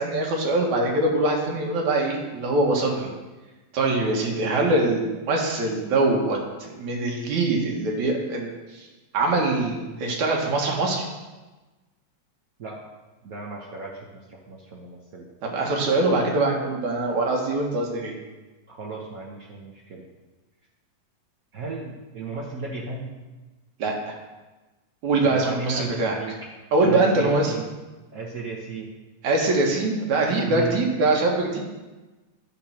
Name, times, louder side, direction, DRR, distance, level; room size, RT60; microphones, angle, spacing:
voice 1, 0.0-3.1 3.7-8.9 9.1-11.0 15.4-18.1 23.8-24.1 25.0-26.2 26.7-27.5 29.2-31.6, right 2 dB, 75° right, 0 dB, 3.1 m, -23 dB
voice 2, 13.2-14.0 14.3-15.3 18.7-20.0 21.5-23.1 25.2-26.3 26.8-27.6 28.1-28.9 30.4-30.8, right 3 dB, 60° right, -3 dB, 0.9 m, -35 dB
11.0 x 7.7 x 5.9 m, 1.2 s
omnidirectional pair, 3.4 m